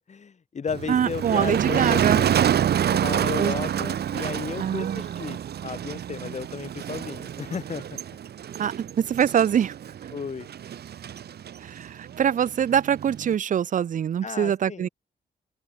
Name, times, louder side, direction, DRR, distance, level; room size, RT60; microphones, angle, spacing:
voice 1, 0.0-2.4 2.9-8.0 10.1-10.5 14.2-14.9, left 6 dB, 45° left, 2.9 m, -34 dB
Motor vehicle (road), 0.7-13.3, right 9 dB, 70° right, 1.2 m, -28 dB
voice 2, 0.9-2.3 3.4-3.5 4.6-5.1 8.6-9.8 11.6-14.9, right 9 dB, 50° right, 0.5 m, -24 dB
open air
wide cardioid pair, 125°, 17 cm